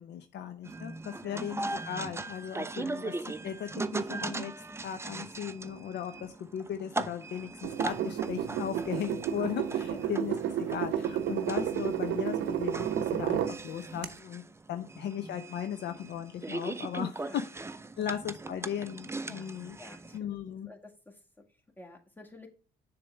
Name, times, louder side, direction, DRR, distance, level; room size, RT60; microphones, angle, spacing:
voice 1, 0.0-3.1 3.4-4.5 4.8-14.4 14.7-17.4 18.0-19.8 20.1-20.7, left 9 dB, 60° left, 8 dB, 0.6 m, -37 dB
sound 1, 0.6-20.2, right 2 dB, 15° right, 0.5 m, -39 dB
sound 2, 7.6-13.6 14.0-14.1, right 9 dB, 70° right, 0.7 m, -31 dB
voice 2, 19.8-20.3 20.7-21.2 21.8-22.5, left 2 dB, 10° left, 2 dB, 1.8 m, -50 dB
6.8 x 3.3 x 6.0 m, 0.36 s
hypercardioid pair, 50°, 20 cm